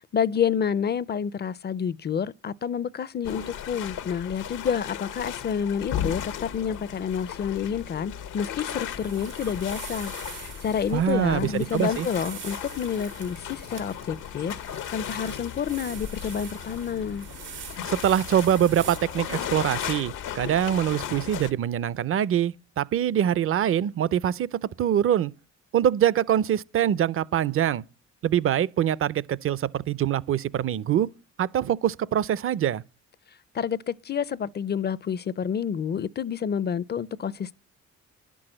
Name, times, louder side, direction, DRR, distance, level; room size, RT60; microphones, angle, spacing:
voice 1, 0.1-14.6 14.9-17.3 33.5-37.5, left 7 dB, 35° left, 0.4 m, -29 dB
sound 1, 3.2-21.5, left 9 dB, 85° left, 1.0 m, -36 dB
sound 2, 8.9-19.9, right 9 dB, 90° right, 1.3 m, -45 dB
voice 2, 10.9-12.1 17.8-25.3 25.7-27.8 28.2-31.1 31.4-32.8, right 10 dB, 45° right, 0.5 m, -24 dB
11.0 x 6.2 x 7.6 m
cardioid pair, 90°, 30 cm